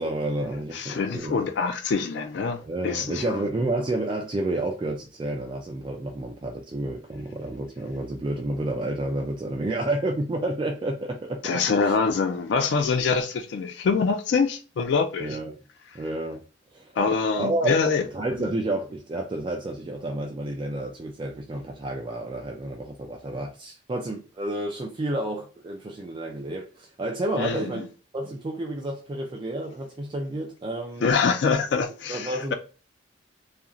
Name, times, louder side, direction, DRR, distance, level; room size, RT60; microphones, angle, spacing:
voice 1, 0.0-1.5 2.6-12.0 15.2-15.6 15.9-16.4 16.7-16.9 17.4-17.7 18.1-27.9 28.1-31.1 32.1-32.5, right 2 dB, 25° right, 0.3 m, -30 dB
voice 2, 0.7-3.4 11.4-15.4 17.0-18.0 27.4-27.6 31.0-32.5, left 5 dB, 65° left, 0.3 m, -25 dB
2.4 x 2.4 x 2.8 m
head